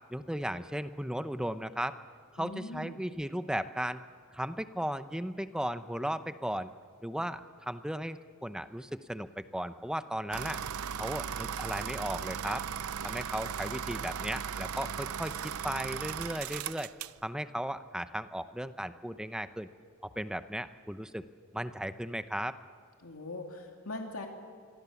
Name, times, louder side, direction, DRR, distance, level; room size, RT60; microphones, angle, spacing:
voice 1, 0.1-2.0 2.3-4.0 4.3-6.7 7.0-10.6 10.9-12.6 13.0-16.9 17.2-19.7 20.2-21.2 21.5-22.6, equal, 5° right, 11 dB, 0.8 m, -36 dB
voice 2, 2.4-3.0 23.0-24.3, left 2 dB, 75° left, 2 dB, 2.5 m, -41 dB
sound 1, 10.3-17.2, right 7 dB, 80° right, 0.6 m, -37 dB
27.0 x 23.5 x 7.2 m, 2.2 s
head